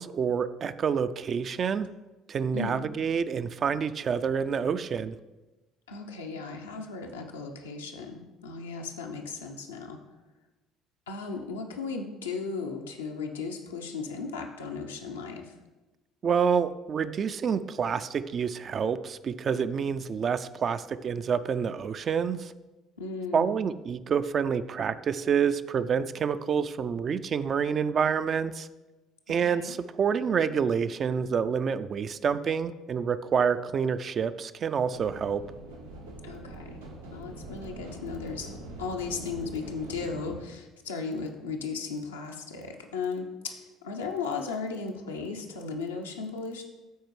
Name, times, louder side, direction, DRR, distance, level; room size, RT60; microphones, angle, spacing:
voice 1, 0.0-1.9 2.3-5.2 16.2-22.5 23.3-28.7 29.3-35.4, right 6 dB, 40° right, 12 dB, 0.4 m, -28 dB
voice 2, 5.9-10.0 11.1-15.6 23.0-23.6 29.3-29.7 36.2-36.8 37.1-38.5 38.8-46.6, left 4 dB, 80° left, 2 dB, 0.7 m, -36 dB
sound 1, 34.9-40.4, right 2 dB, 85° right, 1.0 m, -43 dB
12.5 x 4.3 x 3.2 m, 1.1 s
figure-of-eight pair, 55°, 0 cm